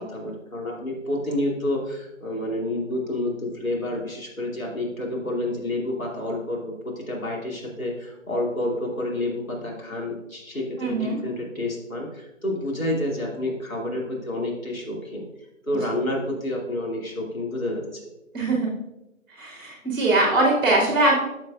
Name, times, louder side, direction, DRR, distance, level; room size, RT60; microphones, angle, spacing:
voice 1, 0.0-15.2 15.6-18.0, left 1 dB, 85° left, -2 dB, 2.5 m, -29 dB
voice 2, 10.8-11.2 18.3-18.7 19.4-21.2, right 2 dB, 15° right, -3 dB, 1.5 m, -21 dB
9.4 x 6.3 x 2.4 m, 0.93 s
figure-of-eight pair, 150°, 40 cm